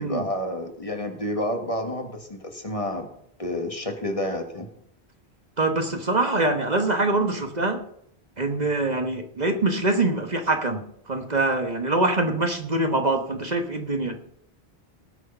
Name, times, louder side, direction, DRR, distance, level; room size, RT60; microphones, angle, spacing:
voice 1, 0.0-3.1 3.4-4.7, left 1 dB, 30° left, 5 dB, 1.5 m, -29 dB
voice 2, 5.6-7.8 8.4-10.8 11.1-14.2, right 2 dB, 40° right, 5 dB, 1.3 m, -24 dB
18.5 x 6.5 x 5.4 m, 0.71 s
omnidirectional pair, 1.1 m